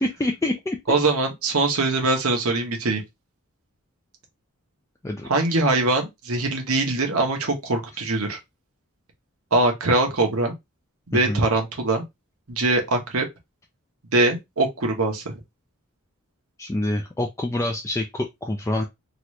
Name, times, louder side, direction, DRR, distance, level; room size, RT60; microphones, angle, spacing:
voice 1, 0.0-1.0 5.0-5.3 11.1-11.4 16.6-18.8, left 1 dB, 15° left, 0.4 m, -26 dB
voice 2, 0.9-3.0 5.2-8.4 9.5-10.5 11.1-12.0 12.5-13.3 14.1-15.3, right 2 dB, 70° right, 1.0 m, -22 dB
3.0 x 2.5 x 3.1 m
head